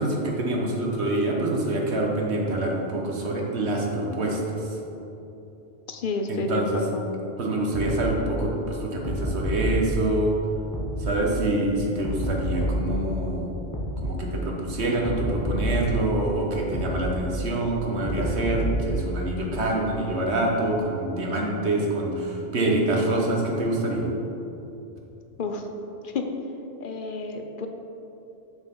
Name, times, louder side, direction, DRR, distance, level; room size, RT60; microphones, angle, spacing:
voice 1, 0.0-4.7 6.3-6.8 7.4-10.3 11.0-13.5 14.0-24.1, right 1 dB, 85° right, -1 dB, 1.5 m, -26 dB
voice 2, 5.9-7.0 25.4-25.6 26.0-26.3 26.8-27.7, left 3 dB, 55° left, 5 dB, 0.8 m, -30 dB
sound 1, 7.7-8.1 9.0-9.9 10.7-11.1 12.0-13.0 13.7-14.1 15.0-16.0 16.7-17.1 18.0-19.0, equal, 20° left, 1.2 m, -28 dB
7.0 x 6.2 x 5.3 m, 3.0 s
omnidirectional pair, 1.1 m